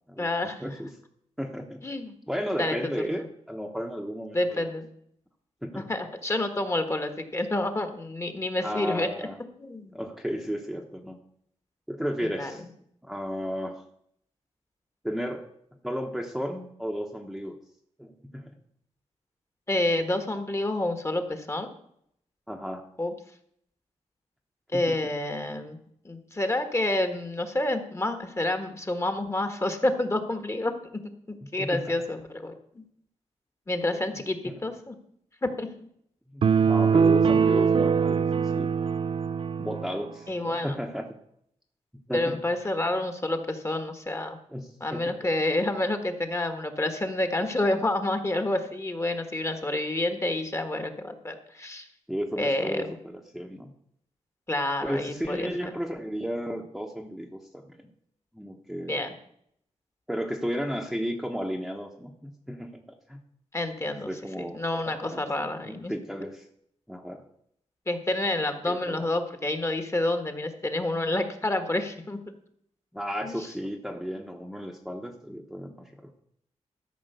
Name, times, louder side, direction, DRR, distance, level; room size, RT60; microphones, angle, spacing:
voice 1, 0.2-0.6 1.8-2.1 2.6-2.7 3.1-3.2 4.3-4.9 5.7-9.1 9.6-10.0 12.2-12.5 19.7-21.7 23.0-23.1 24.7-25.8 26.0-31.0 31.3-32.8 33.7-35.0 35.4-35.7 40.3-40.8 42.1-44.4 44.8-51.9 52.4-53.0 54.5-55.7 58.9-59.1 63.5-65.9 67.9-72.2 73.2-73.5, left 1 dB, 25° left, 8 dB, 1.4 m, -29 dB
voice 2, 1.4-1.8 2.3-4.7 5.6-5.9 8.6-9.4 9.9-11.2 11.9-12.6 13.0-13.8 15.0-15.4 15.8-17.6 18.0-18.5 22.5-22.8 24.7-25.0 31.4-31.9 33.9-34.1 34.4-34.5 36.3-38.7 39.6-41.1 42.1-42.4 44.5-45.1 52.1-53.7 54.8-57.8 58.3-59.0 60.1-63.2 64.1-64.6 64.8-66.5 66.9-67.2 68.7-69.1 72.9-76.1, equal, ahead, 2 dB, 1.0 m, -34 dB
sound 1, 36.4-40.0, right 6 dB, 50° right, 0.4 m, -22 dB
13.0 x 5.4 x 6.7 m, 0.71 s
wide cardioid pair, 95°, 12 cm